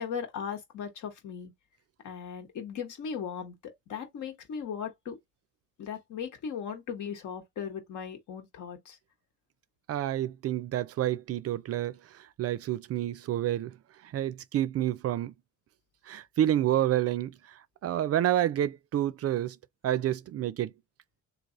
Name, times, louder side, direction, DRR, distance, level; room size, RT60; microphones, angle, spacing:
voice 1, 0.0-1.5 2.0-5.2 5.8-9.0, left 7 dB, 75° left, 1.2 m, -38 dB
voice 2, 9.9-13.8 14.0-15.3 16.1-19.6 19.8-20.7, right 12 dB, 55° right, 0.4 m, -29 dB
3.3 x 2.2 x 3.8 m
cardioid pair, 90°, 30 cm